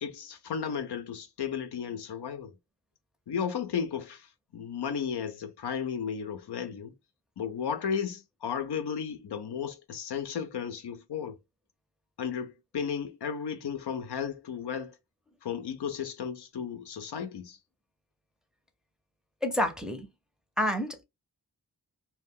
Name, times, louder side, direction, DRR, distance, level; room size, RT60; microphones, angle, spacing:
voice 1, 0.0-2.5 3.3-6.9 7.4-11.4 12.2-15.0 15.4-17.6, left 7 dB, 85° left, 0.6 m, -34 dB
voice 2, 19.4-20.1 20.6-21.0, left 1 dB, ahead, 0.5 m, -28 dB
2.2 x 2.2 x 3.5 m
wide cardioid pair, 70°, 39 cm